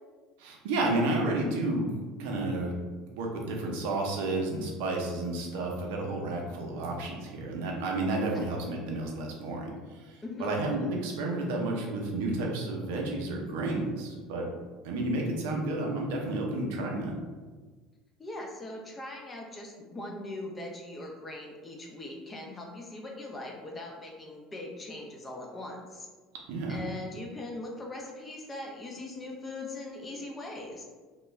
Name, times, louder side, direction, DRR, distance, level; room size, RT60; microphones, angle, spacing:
voice 1, 0.4-2.7 3.2-14.5 14.8-17.1 26.5-26.8, right 2 dB, 75° right, 0 dB, 0.6 m, -31 dB
voice 2, 10.2-10.6 18.2-26.1 26.7-30.8, left 2 dB, 25° left, 0 dB, 0.6 m, -40 dB
2.3 x 2.2 x 3.0 m, 1.4 s
hypercardioid pair, 85°, 0 cm